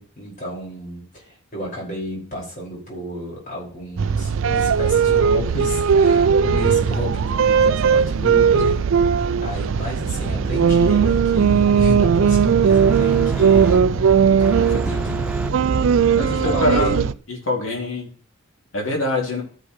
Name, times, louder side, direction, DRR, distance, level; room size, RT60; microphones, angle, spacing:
voice 1, 0.0-8.8 9.4-13.9 14.7-15.2 16.3-17.1, left 1 dB, 40° left, -4 dB, 5.4 m, -31 dB
sound 1, 4.0-17.1, right 6 dB, 70° right, 0.4 m, -18 dB
sound 2, 10.1-17.0, right 1 dB, 5° right, 0.4 m, -30 dB
voice 2, 16.2-17.0 17.3-18.1 18.7-19.4, left 1 dB, 70° left, -1 dB, 2.7 m, -24 dB
13.5 x 7.7 x 3.2 m, 0.44 s
head